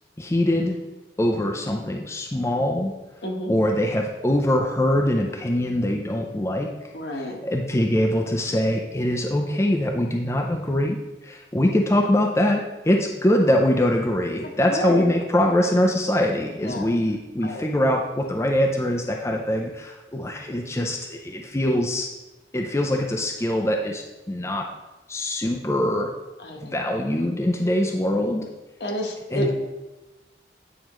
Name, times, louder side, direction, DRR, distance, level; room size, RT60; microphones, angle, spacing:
voice 1, 0.2-0.8 1.2-2.9 3.5-6.7 7.1-11.0 11.2-22.1 22.5-24.7 25.1-26.1 26.6-28.4 29.3-29.5, left 1 dB, 15° left, 1 dB, 0.5 m, -23 dB
voice 2, 3.2-3.5 6.9-7.4 14.7-15.1 16.6-16.9 17.4-17.6 26.4-26.7 28.8-29.5, left 1 dB, 70° left, 1 dB, 1.2 m, -29 dB
9.0 x 4.9 x 3.1 m, 1.1 s
head